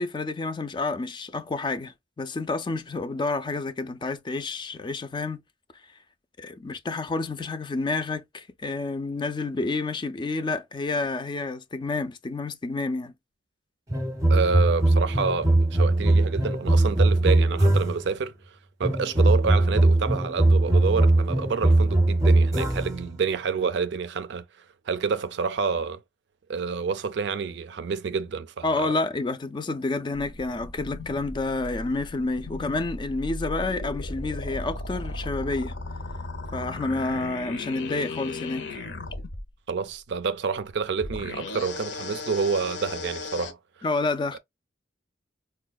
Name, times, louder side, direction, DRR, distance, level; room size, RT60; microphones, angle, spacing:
voice 1, 0.0-5.4 6.4-13.1 28.6-35.7 36.5-38.8 43.8-44.4, left 3 dB, 25° left, 0.3 m, -29 dB
sound 1, 13.9-18.1 18.8-23.1, right 2 dB, 20° right, 0.7 m, -21 dB
voice 2, 14.3-18.3 18.8-24.5 24.9-26.0 26.5-28.9 39.7-43.6, right 5 dB, 65° right, 0.4 m, -28 dB
sound 2, 30.3-39.4 41.0-43.5, left 2 dB, 65° left, 0.7 m, -36 dB
4.8 x 2.2 x 2.2 m
head